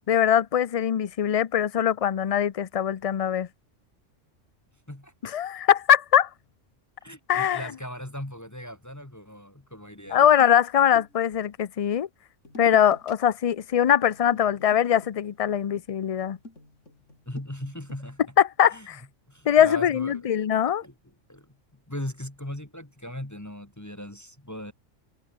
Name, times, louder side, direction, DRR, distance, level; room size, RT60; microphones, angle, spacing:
voice 1, 0.1-3.5 5.2-6.3 7.3-7.7 10.1-12.1 12.6-16.4 18.4-19.0 19.5-20.8, left 9 dB, 50° left, 0.4 m, -22 dB
voice 2, 7.0-10.3 17.3-18.2 18.7-18.9 19.3-20.2 20.8-20.9 21.3-21.6 21.9-24.7, left 1 dB, 15° left, 1.8 m, -38 dB
sound 1, 10.1-11.4 12.4-13.1 13.4-13.7 14.0-18.0, left 2 dB, 75° left, 6.0 m, -47 dB
omnidirectional pair, 1.3 m